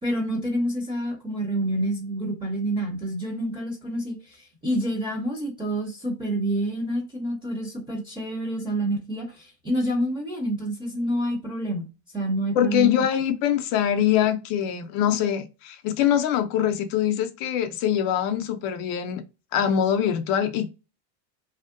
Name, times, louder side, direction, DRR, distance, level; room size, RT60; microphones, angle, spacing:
voice 1, 0.0-4.4 4.6-11.9 12.1-13.0, right 1 dB, 10° right, 0.6 m, -28 dB
voice 2, 12.6-19.2 19.5-20.7, left 10 dB, 50° left, 0.4 m, -23 dB
2.7 x 2.1 x 2.4 m
supercardioid pair, 125°, 50 cm